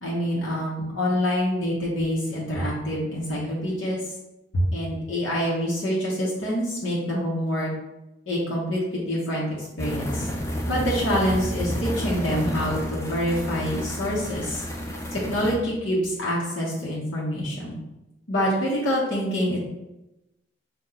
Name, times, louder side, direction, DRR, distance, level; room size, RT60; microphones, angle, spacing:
voice 1, 0.0-4.0 4.5-7.7 8.3-9.5 9.8-10.3 10.7-14.6 15.1-17.8 18.3-19.6, equal, 85° left, -5 dB, 0.9 m, -26 dB
sound 1, 9.8-15.5, equal, 15° left, 0.4 m, -30 dB
4.2 x 2.3 x 3.8 m, 0.96 s
head